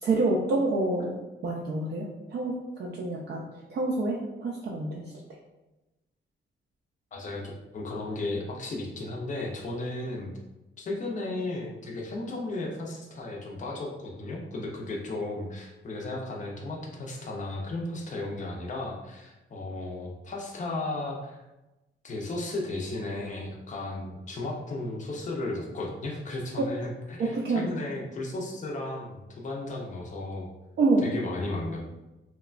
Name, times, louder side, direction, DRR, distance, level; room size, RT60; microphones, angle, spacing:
voice 1, 0.0-1.1 1.4-3.4 3.7-5.0 26.6-26.7 27.2-27.7 30.8-31.0, right 2 dB, 50° right, -3 dB, 0.4 m, -27 dB
voice 2, 7.1-10.3 10.8-21.4 22.0-30.5 31.0-31.8, left 2 dB, 35° left, -1 dB, 0.5 m, -35 dB
2.9 x 2.2 x 2.4 m, 1.0 s
wide cardioid pair, 145°, 21 cm